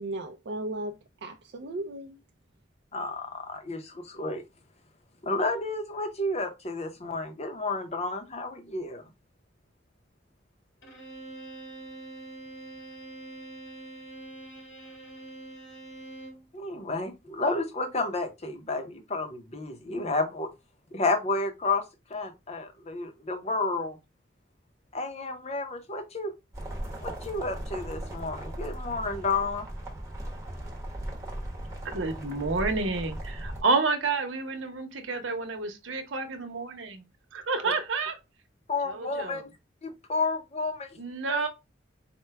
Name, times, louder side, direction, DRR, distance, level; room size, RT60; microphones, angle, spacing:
voice 1, 0.0-2.2, right 1 dB, 60° right, 0.4 m, -36 dB
voice 2, 2.9-4.4 5.2-9.0 16.5-20.5 20.9-21.8 22.1-24.0 24.9-26.3 27.0-29.7 38.7-39.4 39.8-40.9 41.3-41.5, left 3 dB, 35° left, 0.7 m, -31 dB
Bowed string instrument, 10.8-16.5, right 2 dB, 80° left, 1.5 m, -44 dB
sound 1, 26.5-33.6, right 1 dB, 15° right, 1.0 m, -37 dB
voice 3, 31.8-37.0 37.3-38.2 38.9-39.4 41.0-41.5, right 3 dB, 85° right, 0.9 m, -29 dB
4.4 x 2.2 x 3.3 m
head